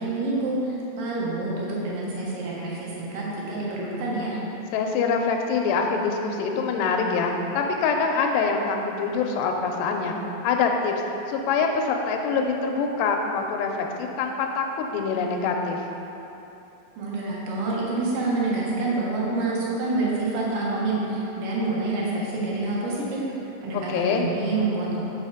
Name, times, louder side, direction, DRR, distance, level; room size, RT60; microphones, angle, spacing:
voice 1, 0.0-4.4 17.0-23.3 23.6-25.0, right 2 dB, 60° right, -5 dB, 2.7 m, -27 dB
voice 2, 4.7-10.2 10.4-11.0 11.3-15.8 23.7-24.3, left 5 dB, 85° left, 3 dB, 2.8 m, -25 dB
7.2 x 6.3 x 4.9 m, 3.0 s
omnidirectional pair, 4.9 m